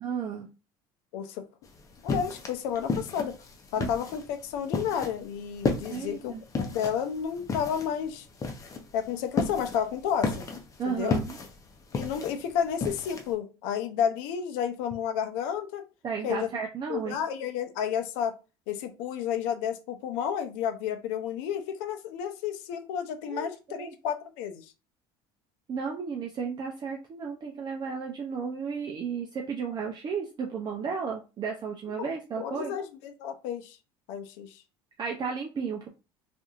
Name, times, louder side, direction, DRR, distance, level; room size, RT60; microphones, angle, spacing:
voice 1, 0.0-0.5 3.8-3.9 5.9-6.4 10.8-11.4 16.0-17.2 23.3-23.9 25.7-32.7 35.0-35.9, right 6 dB, 35° right, 1 dB, 0.5 m, -33 dB
voice 2, 1.1-1.4 2.0-3.3 3.7-8.3 8.9-10.5 10.9-11.2 11.9-15.9 16.2-16.5 16.9-18.3 18.7-24.7 32.0-32.1 32.4-33.8 34.1-34.6, left 8 dB, 80° left, 8 dB, 0.6 m, -31 dB
sound 1, 1.7-13.3, left 4 dB, 25° left, 0.6 m, -33 dB
2.8 x 2.5 x 2.4 m, 0.30 s
supercardioid pair, 105°, 12 cm